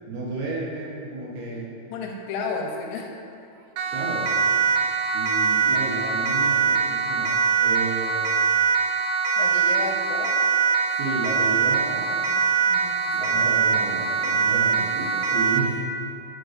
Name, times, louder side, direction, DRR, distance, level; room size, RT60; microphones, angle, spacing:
voice 1, 0.1-1.7 3.9-4.3 5.1-8.3 10.9-12.1 13.1-15.9, right 3 dB, 70° right, -5 dB, 2.6 m, -32 dB
voice 2, 1.9-3.1 9.4-10.3 12.3-13.3, left 4 dB, 85° left, 0 dB, 2.8 m, -33 dB
Siren, 3.8-15.7, right 6 dB, 90° right, 2.3 m, -23 dB
11.0 x 6.5 x 2.5 m, 2.5 s
omnidirectional pair, 5.3 m